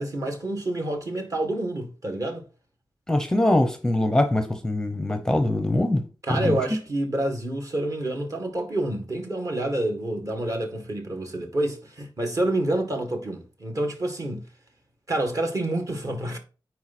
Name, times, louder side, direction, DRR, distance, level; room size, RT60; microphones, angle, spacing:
voice 1, 0.0-2.4 6.2-14.4 15.1-16.4, right 1 dB, 40° right, 1.9 m, -28 dB
voice 2, 3.1-6.0 6.3-6.6, left 1 dB, 5° left, 0.8 m, -23 dB
9.3 x 4.6 x 4.3 m
wide cardioid pair, 150°, 9 cm